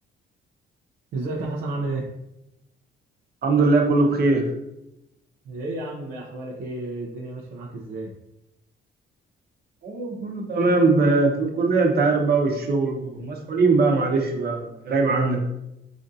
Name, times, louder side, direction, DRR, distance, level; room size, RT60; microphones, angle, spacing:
voice 1, 1.1-2.1 5.4-8.1, right 2 dB, 75° right, -3 dB, 0.6 m, -31 dB
voice 2, 3.4-4.5 9.8-15.4, right 3 dB, 50° right, 1 dB, 0.9 m, -21 dB
5.0 x 2.5 x 2.7 m, 0.88 s
cardioid pair, 90°, 20 cm